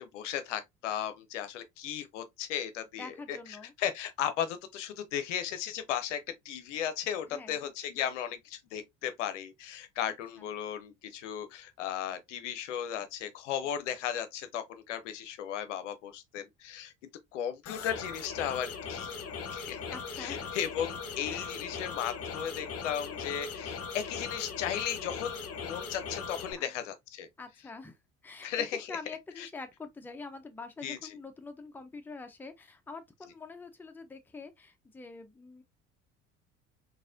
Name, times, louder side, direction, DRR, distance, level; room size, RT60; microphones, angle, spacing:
voice 1, 0.0-3.4 3.8-16.9 17.3-19.1 19.5-19.8 20.2-27.3 28.4-29.0 29.4-29.5 30.8-31.0, left 9 dB, 75° left, 0.6 m, -36 dB
voice 2, 3.0-3.7 5.1-5.2 7.3-7.7 19.9-20.5 21.3-21.5 26.6-26.7 27.4-28.0 28.2-35.6, left 4 dB, 5° left, 0.5 m, -45 dB
sound 1, 17.7-26.5, left 5 dB, 40° left, 0.9 m, -39 dB
4.0 x 2.5 x 2.4 m
figure-of-eight pair, 55°, 37 cm